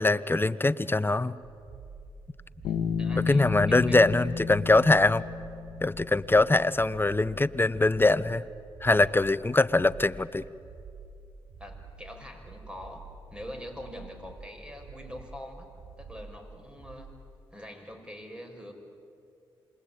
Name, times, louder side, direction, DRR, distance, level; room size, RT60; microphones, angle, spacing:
voice 1, 0.0-1.3 3.3-5.2 5.8-8.4 8.8-10.4, left 2 dB, 20° left, 16 dB, 0.9 m, -23 dB
sound 1, 1.4-17.3, right 4 dB, 45° right, 3.6 m, -48 dB
Bass guitar, 2.6-6.3, left 6 dB, 90° left, 1.5 m, -32 dB
voice 2, 2.6-4.0 11.6-13.0 13.3-15.7 16.0-17.1 17.5-18.7, left 1 dB, 10° right, 4 dB, 5.9 m, -43 dB
26.5 x 22.0 x 9.1 m, 2.5 s
supercardioid pair, 45°, 10 cm